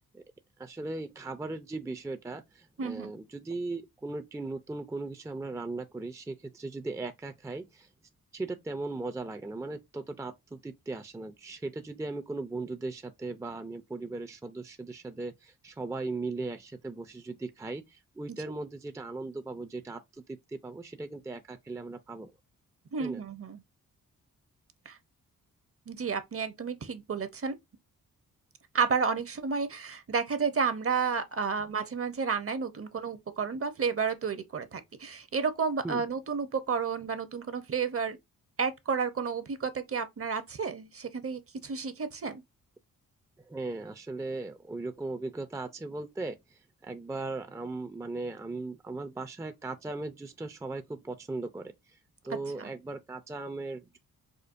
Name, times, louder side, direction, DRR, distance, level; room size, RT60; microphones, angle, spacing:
voice 1, 0.6-7.9 8.3-22.3 23.0-23.2 35.8-36.0 43.4-52.0 52.2-54.0, right 3 dB, 10° right, 0.4 m, -38 dB
voice 2, 2.8-3.1 22.9-23.6 24.9-25.0 25.9-27.5 28.7-38.2 38.6-42.4 52.6-52.7, right 5 dB, 40° right, 0.7 m, -31 dB
5.1 x 2.1 x 2.5 m
cardioid pair, 60°, 35 cm